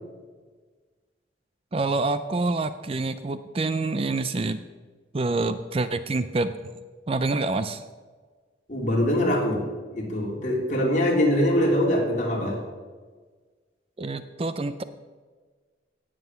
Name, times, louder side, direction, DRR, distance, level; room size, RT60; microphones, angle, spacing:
voice 1, 1.7-4.6 5.1-6.5 7.1-7.8 14.0-14.8, right 3 dB, 30° right, 12 dB, 0.4 m, -27 dB
voice 2, 8.7-9.6 9.9-12.6, left 1 dB, 40° left, -2 dB, 3.3 m, -23 dB
17.0 x 7.7 x 5.7 m, 1.5 s
head